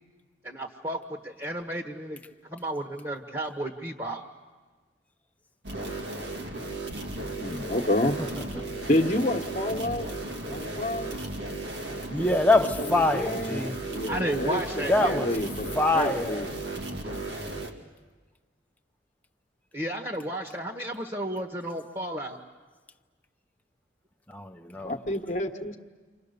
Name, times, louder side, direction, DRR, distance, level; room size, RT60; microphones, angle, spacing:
voice 1, 0.4-2.2 2.5-4.2 14.1-15.2 19.7-22.4, right 1 dB, 25° right, 1.5 m, -33 dB
sound 1, 5.6-17.7, right 2 dB, 80° right, 2.4 m, -35 dB
voice 2, 7.4-8.2 8.9-10.1 10.5-11.1 12.8-16.8 24.8-25.8, left 1 dB, 40° left, 1.3 m, -29 dB
voice 3, 12.1-13.8 14.9-15.3 15.8-16.4 24.3-24.9, left 2 dB, 10° left, 0.8 m, -24 dB
29.5 x 26.5 x 6.8 m
head